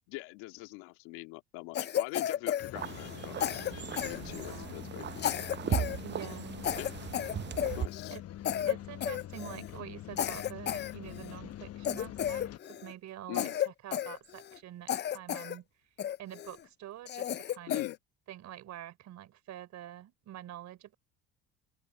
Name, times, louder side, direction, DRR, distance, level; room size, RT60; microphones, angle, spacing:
voice 1, 0.1-5.3 5.7-6.0 6.8-7.0 7.7-8.2 13.3-13.6 17.7-18.0, left 24 dB, 75° left, 2.2 m, -42 dB
Cough, 1.7-3.2 3.4-4.7 5.2-6.0 6.2-6.4 6.6-8.2 8.4-8.8 9.0-9.7 10.2-11.4 11.8-12.9 13.3-14.6 14.9-15.6 16.0-16.5 17.1-18.0, left 10 dB, 35° left, 0.5 m, -33 dB
sound 1, 2.6-12.6, left 12 dB, 50° left, 1.1 m, -45 dB
sound 2, 2.8-7.9, right 10 dB, 35° right, 0.7 m, -38 dB
voice 2, 4.1-4.8 6.0-6.7 8.1-8.2 8.7-15.7 16.2-17.8 18.3-20.9, right 12 dB, 60° right, 3.7 m, -46 dB
open air
supercardioid pair, 75°, 32 cm